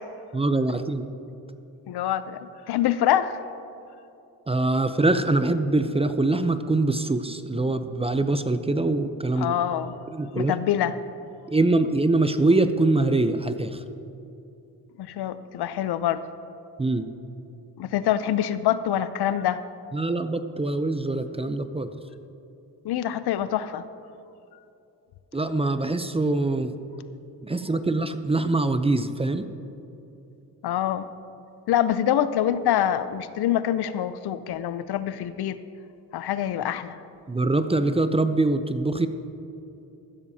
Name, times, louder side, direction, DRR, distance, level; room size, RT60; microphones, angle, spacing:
voice 1, 0.3-1.1 4.5-9.5 10.1-10.5 11.5-13.8 16.8-17.1 19.9-21.9 25.3-26.7 27.4-29.5 37.3-39.1, right 2 dB, 15° right, 10 dB, 0.6 m, -23 dB
voice 2, 1.9-3.4 9.4-10.0 10.4-11.0 15.0-16.2 17.8-19.6 22.8-23.8 30.6-31.1 31.7-35.6 36.1-37.0, left 11 dB, 65° left, 13 dB, 0.6 m, -25 dB
15.0 x 12.5 x 2.8 m, 2.8 s
supercardioid pair, 65°, 42 cm